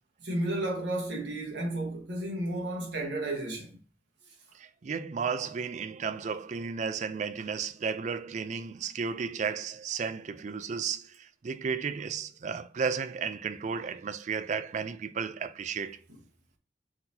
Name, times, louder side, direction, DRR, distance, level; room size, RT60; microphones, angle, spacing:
voice 1, 0.2-3.7, right 1 dB, 75° right, 1.3 m, -32 dB
voice 2, 4.5-16.0, right 6 dB, 40° right, 0.4 m, -33 dB
4.4 x 3.9 x 2.7 m
head